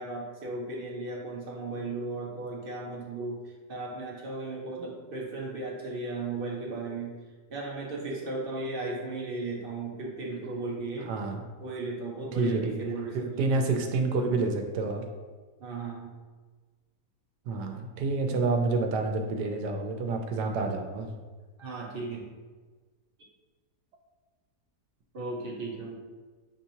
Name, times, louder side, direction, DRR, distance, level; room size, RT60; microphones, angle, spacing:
voice 1, 0.0-7.1 7.5-11.1 11.6-13.5 15.6-16.1 21.6-22.3 25.1-25.9, right 3 dB, 55° right, -3 dB, 0.6 m, -36 dB
voice 2, 11.0-11.4 12.3-12.8 13.1-15.0 17.5-21.1, right 3 dB, 85° right, 4 dB, 1.2 m, -28 dB
6.9 x 2.8 x 2.7 m, 1.4 s
omnidirectional pair, 1.8 m